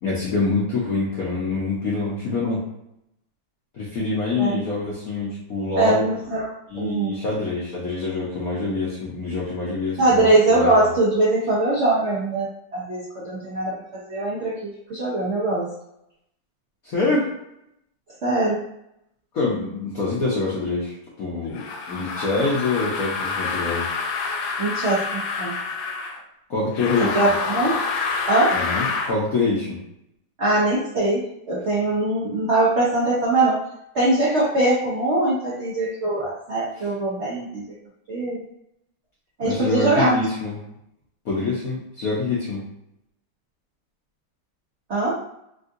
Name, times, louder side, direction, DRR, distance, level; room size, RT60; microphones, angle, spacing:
voice 1, 0.0-2.6 3.7-6.0 6.7-10.7 16.8-17.3 19.3-23.9 26.5-27.3 28.5-29.8 36.7-36.9 39.4-40.6 41.2-42.6, left 3 dB, 70° left, -6 dB, 0.8 m, -25 dB
voice 2, 5.8-7.1 10.0-15.7 18.2-18.6 24.6-25.5 27.1-27.8 28.3-28.5 30.4-33.6 33.9-37.7 38.1-38.4 39.4-40.2 44.9-45.2, right 2 dB, 80° right, -7 dB, 0.6 m, -22 dB
sound 1, 21.5-26.2 26.7-29.2, left 4 dB, 85° left, 1.5 m, -27 dB
3.7 x 2.6 x 2.5 m, 0.79 s
omnidirectional pair, 2.4 m